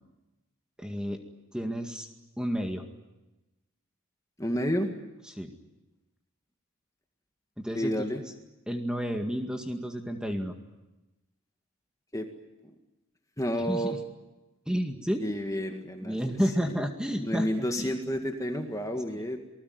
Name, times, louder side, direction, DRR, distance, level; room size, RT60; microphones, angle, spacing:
voice 1, 0.8-1.2 1.5-2.1 2.4-2.8 5.3-5.5 7.6-8.2 8.7-10.5 13.6-14.0 14.7-15.2 16.0-17.9 19.1-19.2, equal, 5° right, 4 dB, 2.0 m, -31 dB
voice 2, 4.4-4.9 7.7-8.2 12.1-12.3 13.4-14.0 15.2-16.2 16.7-16.8 17.2-19.4, equal, 15° left, 4 dB, 1.9 m, -30 dB
27.5 x 20.0 x 9.6 m, 1.0 s
head